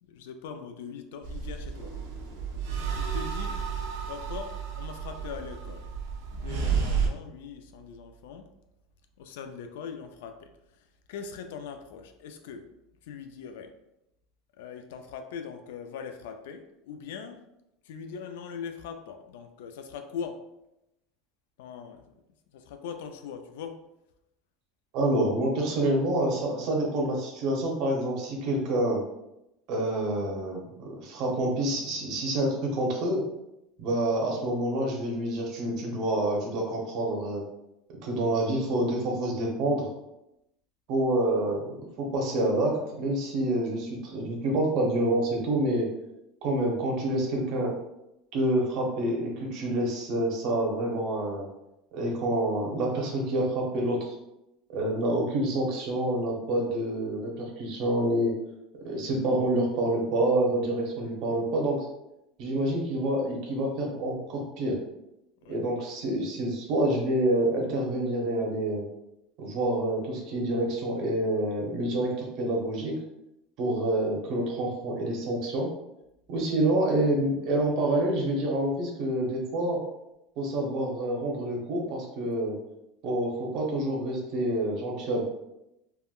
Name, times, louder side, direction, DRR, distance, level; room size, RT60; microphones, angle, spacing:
voice 1, 0.1-1.9 2.9-3.6 4.1-5.8 6.3-8.5 9.2-10.5 10.7-12.7 13.0-13.7 14.6-17.4 17.8-20.4 21.6-22.1 22.5-23.8 65.4-65.6, left 6 dB, 90° left, 7 dB, 0.3 m, -41 dB
sound 1, 1.2-7.1, right 6 dB, 85° right, 0.6 m, -32 dB
voice 2, 24.9-29.0 29.7-33.2 33.8-37.4 38.0-39.9 40.9-45.9 46.4-47.7 48.3-51.5 51.9-54.1 54.7-58.3 58.8-61.9 62.4-64.8 65.5-68.8 69.4-72.9 73.6-75.7 76.3-79.8 80.4-82.6 83.0-85.2, right 1 dB, 40° right, -1 dB, 0.7 m, -27 dB
3.5 x 2.1 x 2.3 m, 0.87 s
cardioid pair, 175°, 0 cm